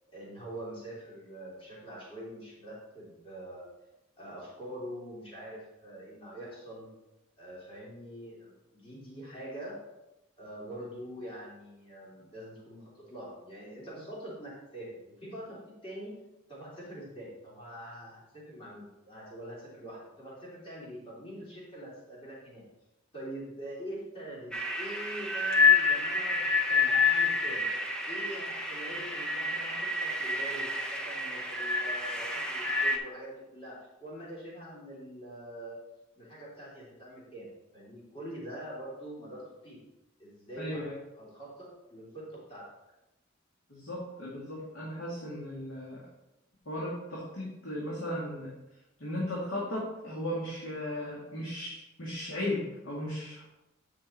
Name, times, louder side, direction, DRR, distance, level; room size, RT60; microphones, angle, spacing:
voice 1, 0.1-3.7 4.2-6.9 7.4-9.8 10.4-15.6 15.8-16.1 16.5-22.6 23.1-27.7 28.0-35.8 36.2-39.8 40.2-40.8 41.1-42.7, right 1 dB, 30° left, -6 dB, 2.9 m, -44 dB
sound 1, 24.5-33.0, left 4 dB, 5° left, 0.7 m, -28 dB
voice 2, 40.6-40.9 43.7-46.0 46.7-48.5 49.0-53.4, left 1 dB, 85° left, -6 dB, 2.2 m, -36 dB
8.7 x 5.6 x 4.3 m, 0.95 s
head